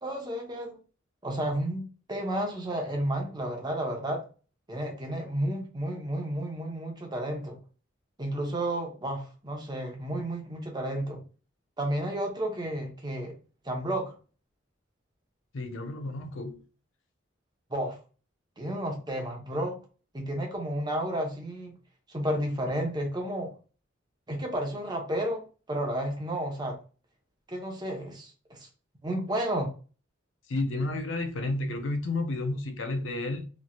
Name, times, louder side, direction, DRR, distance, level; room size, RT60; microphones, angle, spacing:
voice 1, 0.0-0.8 1.2-4.2 4.7-7.6 8.2-11.2 11.8-13.3 13.6-14.2 17.7-18.0 18.6-19.8 20.1-21.7 22.1-23.5 24.3-25.4 25.7-26.8 27.5-28.7 29.0-29.7, right 1 dB, 20° right, 0.8 m, -32 dB
voice 2, 15.5-16.6 30.5-33.5, left 2 dB, 70° left, 0.6 m, -31 dB
3.1 x 2.7 x 2.3 m
head